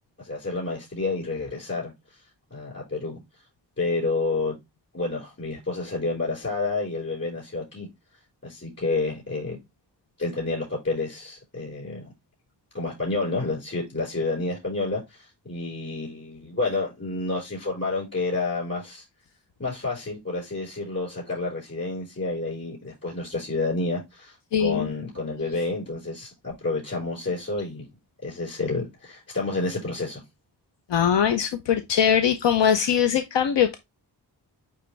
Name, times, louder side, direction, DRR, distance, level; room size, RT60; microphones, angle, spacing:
voice 1, 0.2-1.9 2.5-3.2 3.8-4.6 4.9-7.9 8.4-9.6 10.2-12.1 12.7-19.0 19.6-27.9 28.2-30.2, left 3 dB, 35° left, 5.0 m, -29 dB
voice 2, 24.5-24.9 30.9-33.8, left 8 dB, 90° left, 0.7 m, -21 dB
9.2 x 3.4 x 3.3 m
wide cardioid pair, 125°, 42 cm